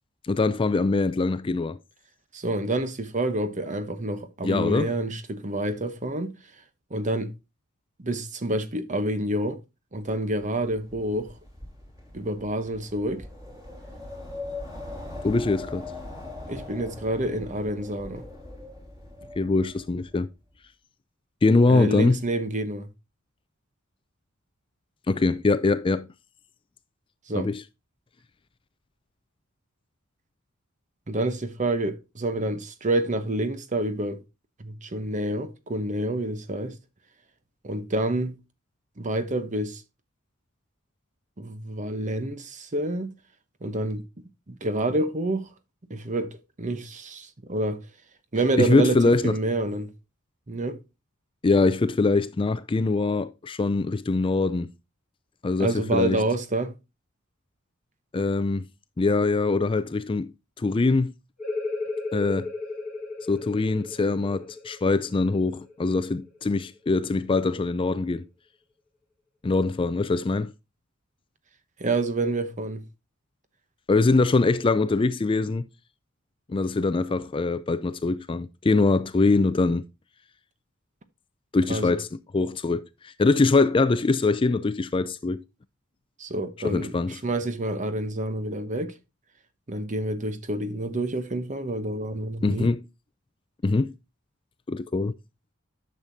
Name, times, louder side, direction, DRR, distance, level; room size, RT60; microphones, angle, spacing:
voice 1, 0.3-1.8 4.4-4.9 15.2-15.9 19.4-20.3 21.4-22.2 25.1-26.1 27.3-27.6 48.6-49.3 51.4-54.7 55.4-56.2 58.1-58.7 59.0-60.3 60.6-61.1 62.1-62.5 63.3-68.2 69.4-70.5 73.9-75.6 76.5-79.8 81.5-85.4 86.6-87.2 92.4-92.8 93.6-93.9 94.7-95.1, left 3 dB, 25° left, 0.4 m, -23 dB
voice 2, 2.3-6.4 6.9-7.3 8.0-9.6 9.9-11.3 12.1-13.2 16.5-18.2 21.7-22.9 27.3-27.5 31.1-34.2 34.6-36.8 37.6-38.4 39.0-39.8 41.4-43.2 43.6-45.5 45.9-47.8 48.3-49.9 50.5-50.8 55.6-56.8 71.8-72.8 81.7-82.0 86.2-88.9 89.7-92.7, right 1 dB, 35° right, 0.9 m, -28 dB
Wind, 10.3-20.2, left 2 dB, 15° right, 3.2 m, -41 dB
sound 1, 61.4-66.8, left 3 dB, ahead, 2.3 m, -35 dB
10.5 x 6.5 x 2.7 m
head